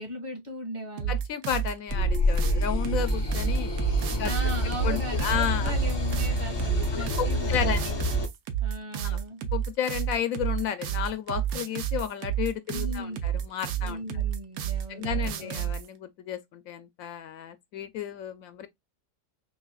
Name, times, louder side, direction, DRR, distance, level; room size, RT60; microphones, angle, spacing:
voice 1, 0.0-1.2 4.2-8.1 8.6-9.4 12.7-13.4 13.7-15.7, equal, 30° right, 2.0 m, -38 dB
sound 1, 1.0-15.9, right 10 dB, 85° right, 1.2 m, -30 dB
voice 2, 1.1-3.7 4.1-4.3 4.8-5.7 6.9-7.9 9.0-9.2 9.5-14.2 14.9-18.7, left 9 dB, 75° left, 1.0 m, -32 dB
sound 2, 1.9-8.3, left 1 dB, 25° left, 0.6 m, -27 dB
5.5 x 2.5 x 2.2 m
omnidirectional pair, 1.5 m